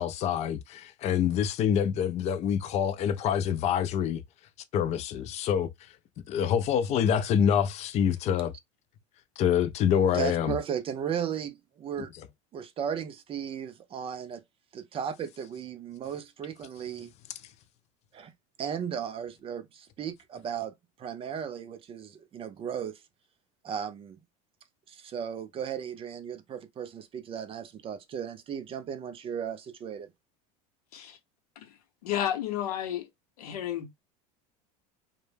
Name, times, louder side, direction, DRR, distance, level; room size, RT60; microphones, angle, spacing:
voice 1, 0.0-4.2 4.7-5.7 6.3-8.5 9.4-10.6, left 8 dB, 35° left, 0.4 m, -26 dB
voice 2, 10.1-12.1 12.5-14.4 14.7-17.1 18.1-18.3 18.6-23.0 23.6-24.2 24.9-30.1, right 8 dB, 30° right, 0.4 m, -36 dB
voice 3, 32.0-33.1 33.4-33.9, left 11 dB, 85° left, 0.8 m, -32 dB
2.1 x 2.1 x 3.2 m
supercardioid pair, 110°, 19 cm